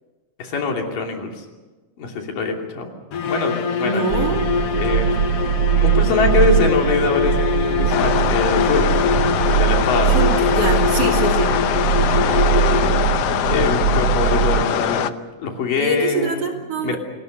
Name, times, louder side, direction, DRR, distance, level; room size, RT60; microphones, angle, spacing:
voice 1, 0.4-1.5 2.0-2.9 3.3-4.1 4.7-5.2 5.8-9.0 9.4-10.2 11.5-11.6 12.4-13.0 13.5-15.1 15.4-16.4 16.8-17.0, left 4 dB, 75° left, 2 dB, 4.6 m, -23 dB
sound 1, 3.1-13.3, left 7 dB, 60° left, 1.8 m, -24 dB
voice 2, 3.8-4.4 10.1-11.5 15.8-17.0, right 2 dB, 45° right, 2 dB, 3.6 m, -24 dB
sound 2, 4.1-14.6, right 9 dB, 65° right, 1.5 m, -21 dB
sound 3, 7.9-15.1, left 11 dB, 90° left, 1.3 m, -23 dB
28.0 x 20.5 x 6.7 m, 1.2 s
omnidirectional pair, 4.0 m